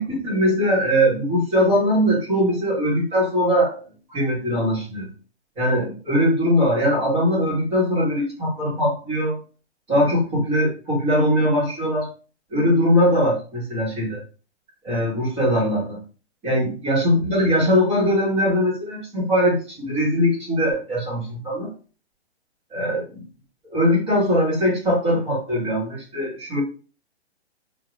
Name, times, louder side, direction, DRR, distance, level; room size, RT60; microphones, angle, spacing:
voice 1, 0.0-3.8 4.1-5.1 5.6-9.4 9.9-12.1 12.5-14.2 14.8-16.0 16.4-21.7 22.7-23.2 23.7-26.6, equal, 15° right, -6 dB, 1.0 m, -21 dB
2.2 x 2.1 x 2.9 m, 0.38 s
hypercardioid pair, 160°, 34 cm